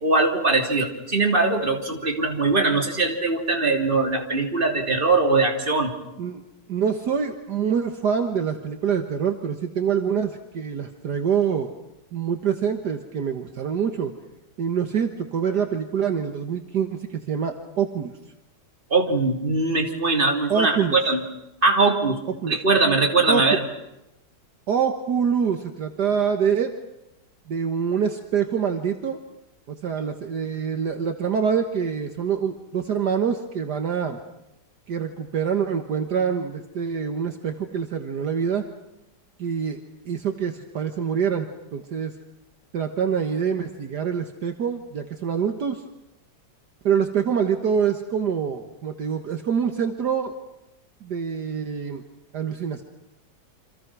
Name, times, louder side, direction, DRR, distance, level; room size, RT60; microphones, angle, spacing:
voice 1, 0.0-5.9 18.9-21.2 21.6-22.2 22.5-23.6, right 3 dB, 30° right, 3 dB, 3.3 m, -21 dB
voice 2, 6.7-11.7 12.1-14.1 14.6-18.1 20.5-21.0 22.4-22.6 23.3-23.4 24.7-26.7 27.5-29.2 29.7-34.2 34.9-38.7 39.4-39.8 40.1-42.1 42.7-45.8 46.8-50.3 51.0-52.0 52.3-52.8, right 7 dB, 65° right, 6 dB, 1.9 m, -25 dB
28.5 x 26.5 x 6.2 m, 0.89 s
omnidirectional pair, 2.0 m